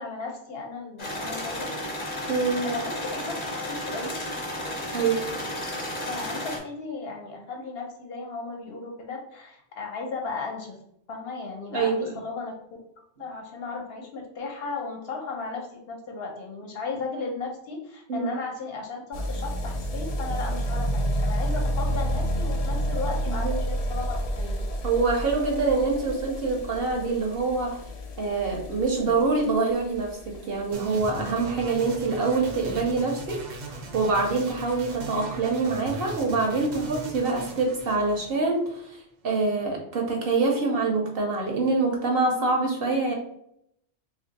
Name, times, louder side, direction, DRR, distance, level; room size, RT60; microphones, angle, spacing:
voice 1, 0.0-1.7 2.6-4.1 6.0-10.7 11.1-12.5 13.2-24.6, left 4 dB, 60° left, 0 dB, 0.9 m, -35 dB
sound 1, 1.0-6.6, left 1 dB, 30° left, 0.8 m, -33 dB
voice 2, 2.3-2.7 4.9-5.2 11.7-12.1 18.1-18.3 23.3-23.5 24.8-27.8 28.2-30.1 30.5-43.1, right 3 dB, 60° right, 1 dB, 0.8 m, -25 dB
sound 2, 19.1-35.9 36.2-36.3 36.5-36.6 36.8-36.9 37.1-37.2 37.9-38.0, equal, 80° left, 0.3 m, -31 dB
sound 3, 30.7-38.8, right 2 dB, 90° right, 1.0 m, -39 dB
2.7 x 2.5 x 3.9 m, 0.75 s
omnidirectional pair, 1.3 m